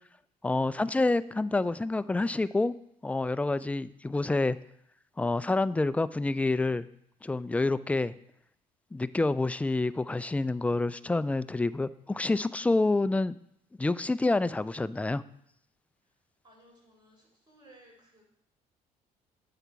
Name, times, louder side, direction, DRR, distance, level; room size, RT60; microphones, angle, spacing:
voice 1, 0.4-2.7 3.0-4.6 5.2-6.9 7.2-8.1 8.9-13.4 13.8-15.2, left 2 dB, 10° left, 15 dB, 0.3 m, -28 dB
voice 2, 16.4-18.2, right 1 dB, 25° right, -1 dB, 3.9 m, -59 dB
7.9 x 5.8 x 4.6 m, 0.72 s
hypercardioid pair, 55°, 18 cm